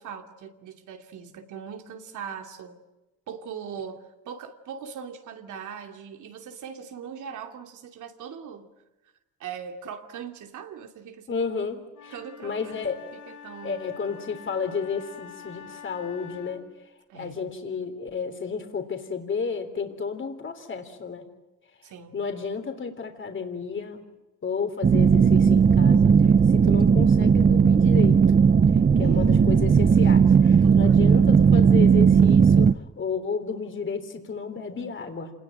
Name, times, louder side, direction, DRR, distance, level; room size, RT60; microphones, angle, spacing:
voice 1, 0.0-2.8 3.3-8.7 9.4-11.5 12.1-12.8 13.1-13.9 17.1-17.6 21.8-22.3 28.7-29.6 30.6-31.4, right 7 dB, 80° right, 5 dB, 2.8 m, -41 dB
voice 2, 11.3-12.1 12.4-13.0 13.6-16.7 17.1-21.2 22.1-24.0 24.4-28.2 29.0-32.7 33.0-35.3, left 5 dB, 40° left, 6 dB, 3.6 m, -32 dB
Wind instrument woodwind instrument, 11.9-16.7, left 7 dB, 70° left, 5.9 m, -46 dB
sound 1, 24.8-32.7, right 6 dB, 30° right, 0.8 m, -17 dB
27.5 x 20.0 x 8.9 m, 1.0 s
cardioid pair, 90°, 30 cm